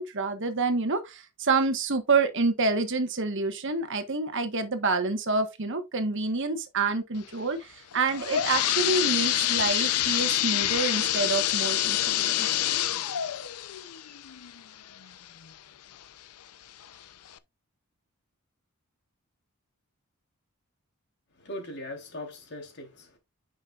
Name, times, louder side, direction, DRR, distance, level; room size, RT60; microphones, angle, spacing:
voice 1, 0.0-12.5, right 3 dB, 55° right, 1.4 m, -28 dB
sound 1, 7.9-15.5 16.0-16.1 16.8-16.9 17.3-17.4, left 12 dB, 90° left, 0.7 m, -27 dB
voice 2, 21.3-23.2, left 1 dB, 50° left, 3.6 m, -40 dB
9.9 x 6.4 x 2.5 m
head